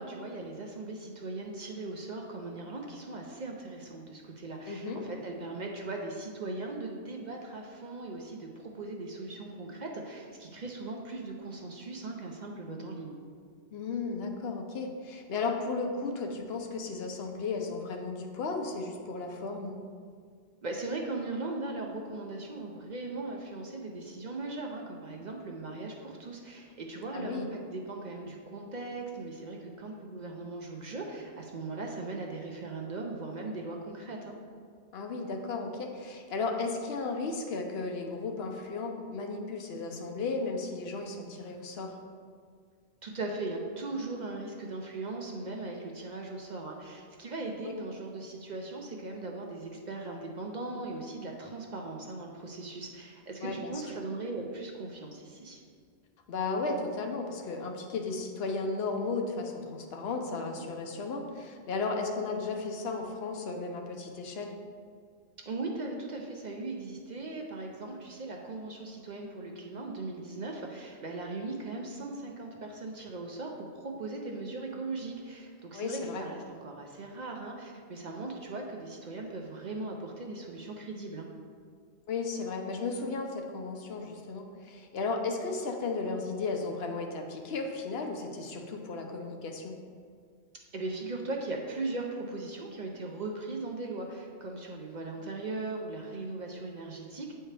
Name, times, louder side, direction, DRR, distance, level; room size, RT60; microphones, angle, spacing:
voice 1, 0.0-13.2 20.6-34.4 43.0-55.6 65.5-81.3 90.7-97.3, right 2 dB, 50° right, 0 dB, 0.6 m, -39 dB
voice 2, 4.7-5.0 13.7-19.8 27.1-27.5 34.9-42.0 47.6-47.7 53.4-53.7 56.3-64.6 75.7-76.3 82.1-89.8, left 3 dB, 65° left, 3 dB, 0.9 m, -34 dB
7.7 x 4.4 x 3.2 m, 2.1 s
omnidirectional pair, 1.2 m